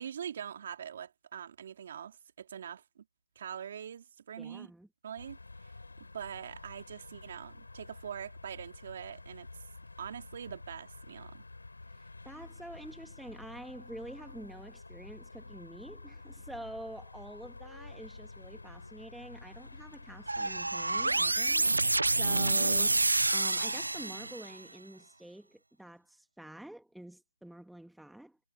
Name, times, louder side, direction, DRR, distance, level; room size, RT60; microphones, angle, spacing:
voice 1, 0.0-3.0 3.4-4.7 5.0-5.7 6.1-9.5 10.0-11.4, right 8 dB, 40° right, 3.3 m, -43 dB
voice 2, 4.4-4.9 11.9-23.0 23.3-28.4, right 1 dB, ahead, 2.0 m, -47 dB
sound 1, 5.2-23.4, left 3 dB, 85° left, 3.0 m, -50 dB
sound 2, 20.3-24.6, right 2 dB, 85° right, 0.7 m, -28 dB
figure-of-eight pair, 155°, 0 cm